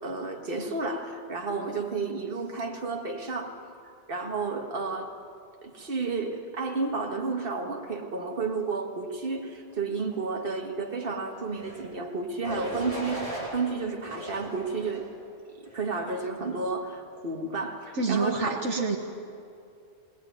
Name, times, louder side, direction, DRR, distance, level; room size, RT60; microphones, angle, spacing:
voice 1, 0.0-3.6 4.1-5.1 5.6-15.1 15.5-18.8, right 4 dB, 50° right, 2 dB, 1.9 m, -32 dB
sound 1, 11.5-11.9 12.4-13.5 14.0-15.1 15.7-16.0, equal, 30° left, 5.9 m, -37 dB
voice 2, 17.9-19.0, right 4 dB, 75° right, 3 dB, 1.5 m, -27 dB
20.0 x 18.5 x 9.4 m, 2.4 s
omnidirectional pair, 1.2 m